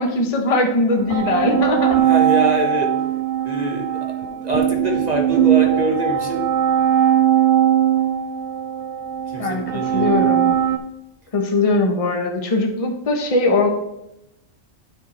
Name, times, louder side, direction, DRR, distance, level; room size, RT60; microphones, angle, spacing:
voice 1, 0.0-2.1 9.4-10.5 11.3-13.7, left 2 dB, 30° left, 2 dB, 1.0 m, -20 dB
sound 1, 0.9-10.8, right 10 dB, 60° right, 0.5 m, -19 dB
voice 2, 2.0-2.9 3.4-4.2 4.4-6.5 9.3-10.2, right 1 dB, 35° right, 1 dB, 1.2 m, -24 dB
9.1 x 4.6 x 4.2 m, 0.85 s
omnidirectional pair, 1.3 m